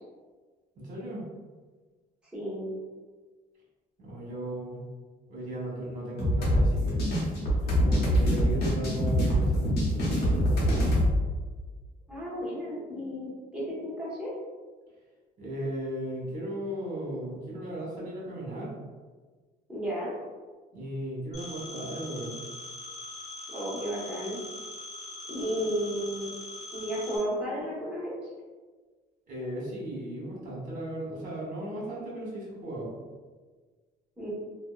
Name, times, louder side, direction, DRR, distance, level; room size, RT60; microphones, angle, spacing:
voice 1, 0.8-1.2 4.0-4.9 5.3-7.0 7.5-11.0 15.4-18.7 20.7-22.4 29.3-32.9, right 1 dB, 50° right, -4 dB, 1.1 m, -36 dB
voice 2, 2.3-2.7 12.1-14.3 19.7-20.1 23.5-24.4 25.3-26.3 26.7-28.1 34.2-34.3, equal, 5° right, -7 dB, 0.9 m, -33 dB
sound 1, 6.2-11.1, equal, 70° left, 0.8 m, -24 dB
Telephone, 21.3-27.2, left 2 dB, 45° left, 0.8 m, -42 dB
2.6 x 2.1 x 2.2 m, 1.4 s
cardioid pair, 110°, 17 cm